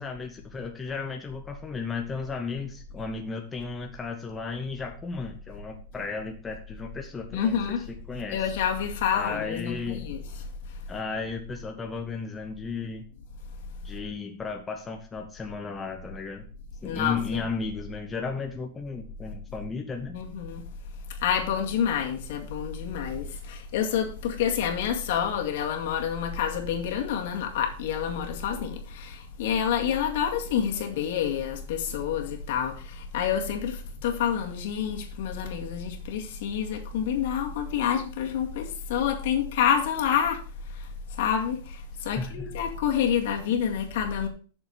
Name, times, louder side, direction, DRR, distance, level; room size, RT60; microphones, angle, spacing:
voice 1, 0.0-8.5 9.1-10.0 10.9-13.0 13.8-16.5 16.8-20.2 42.1-42.5, left 4 dB, 10° left, 0.9 m, -34 dB
voice 2, 7.3-7.8 8.3-10.2 16.8-17.4 20.1-20.6 21.2-40.4 41.2-44.3, left 8 dB, 65° left, 2.2 m, -28 dB
7.4 x 6.8 x 5.6 m
supercardioid pair, 160°, 0 cm